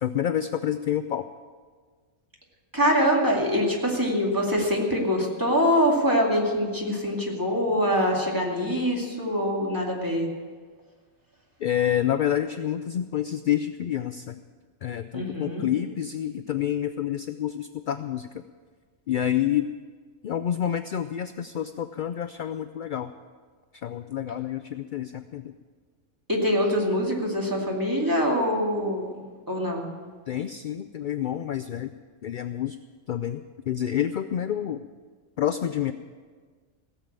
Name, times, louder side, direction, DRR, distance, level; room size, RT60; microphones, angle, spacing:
voice 1, 0.0-1.2 11.6-14.4 14.8-18.4 19.1-19.7 20.2-23.1 23.8-25.5 30.3-31.9 32.2-32.8 33.1-34.8 35.4-35.9, left 10 dB, 65° left, 10 dB, 0.5 m, -28 dB
voice 2, 2.7-10.3 15.1-15.7 26.3-29.1 29.5-29.9, equal, 15° right, -2 dB, 2.4 m, -24 dB
17.0 x 7.3 x 8.8 m, 1.5 s
omnidirectional pair, 1.3 m